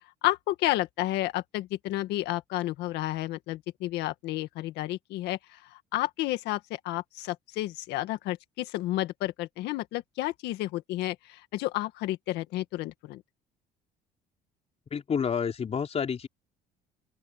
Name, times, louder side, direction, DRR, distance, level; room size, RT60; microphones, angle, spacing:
voice 1, 0.2-13.2, left 16 dB, 90° left, 1.8 m, -31 dB
voice 2, 14.9-16.3, left 6 dB, 40° left, 4.3 m, -29 dB
open air
cardioid pair, 110°, 17 cm